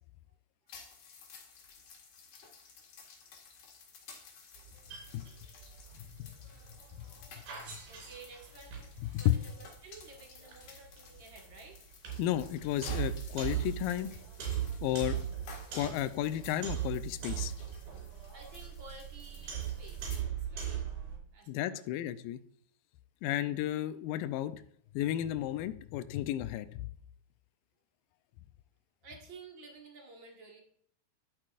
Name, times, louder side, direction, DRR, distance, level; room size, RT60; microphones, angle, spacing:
sound 1, 0.7-20.2, left 5 dB, 60° left, 3.2 m, -55 dB
sound 2, 4.5-21.2, right 9 dB, 75° right, 5.7 m, -40 dB
voice 1, 7.1-7.6 7.9-11.8 18.3-20.8 21.3-21.9 23.3-23.6 29.0-30.6, right 3 dB, 45° right, 0 dB, 1.6 m, -53 dB
voice 2, 12.2-14.1 14.8-15.2 15.7-17.5 21.5-22.4 23.2-24.6 24.9-26.9, left 13 dB, 85° left, 11 dB, 2.0 m, -33 dB
11.5 x 8.7 x 2.5 m, 0.62 s
omnidirectional pair, 4.5 m